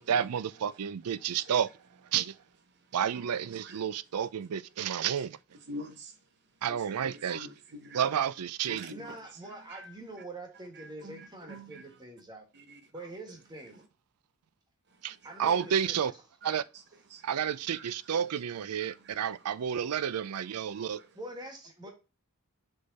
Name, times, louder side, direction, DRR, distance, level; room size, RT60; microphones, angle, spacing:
voice 1, 0.0-1.7 2.1-2.4 2.9-5.4 6.6-7.5 7.9-8.9 15.0-16.1 16.4-16.6 17.2-21.0, right 8 dB, 85° right, 0.4 m, -30 dB
voice 2, 1.3-1.6 2.9-3.3 3.6-3.8 5.2-5.3 5.5-6.2 6.7-8.1 8.6-9.2 9.7-9.9 10.7-11.9 12.5-13.1 14.9-15.4 15.7-15.8 16.4-16.8 17.1-17.3 17.7-18.1 18.8-19.6 20.4-21.1, right 1 dB, 50° right, 0.8 m, -48 dB
voice 3, 8.9-12.5 12.9-13.8 15.2-16.2 21.1-21.9, right 1 dB, 20° right, 1.8 m, -45 dB
6.6 x 3.7 x 4.0 m
head